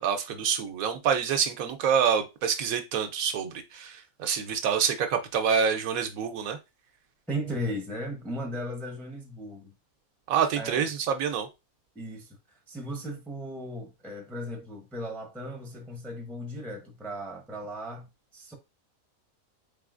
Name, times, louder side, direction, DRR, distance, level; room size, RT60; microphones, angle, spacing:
voice 1, 0.0-6.6 10.3-11.5, right 7 dB, 75° right, 1.1 m, -27 dB
voice 2, 7.3-9.7 10.6-10.9 11.9-12.4 12.7-18.1 18.3-18.5, equal, ahead, 0.5 m, -36 dB
3.9 x 3.7 x 2.4 m
omnidirectional pair, 1.5 m